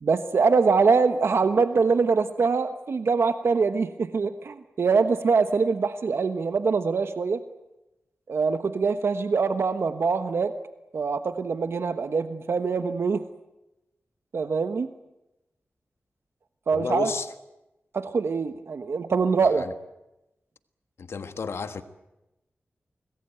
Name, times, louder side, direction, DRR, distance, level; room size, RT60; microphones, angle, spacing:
voice 1, 0.0-7.4 8.3-10.5 10.9-13.2 14.3-14.9 16.7-17.1 17.9-19.6, right 4 dB, 70° right, 1.1 m, -23 dB
voice 2, 16.7-17.3 19.4-19.7 21.0-21.8, left 5 dB, 80° left, 1.4 m, -32 dB
25.5 x 20.0 x 9.0 m
wide cardioid pair, 95°, 4 cm